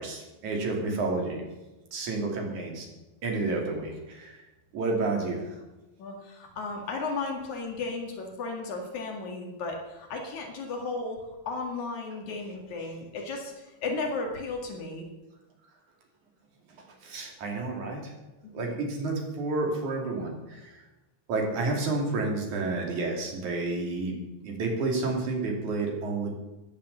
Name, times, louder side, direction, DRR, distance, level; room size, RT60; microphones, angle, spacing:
voice 1, 0.0-1.4 1.9-2.9 3.2-4.4 4.7-5.6 16.7-18.1 18.5-20.8 21.3-24.2 24.4-26.3, right 3 dB, 80° right, 1 dB, 4.2 m, -30 dB
voice 2, 6.0-15.1 18.6-18.7, left 3 dB, 75° left, 1 dB, 3.5 m, -34 dB
15.0 x 11.0 x 6.9 m, 1.1 s
omnidirectional pair, 3.4 m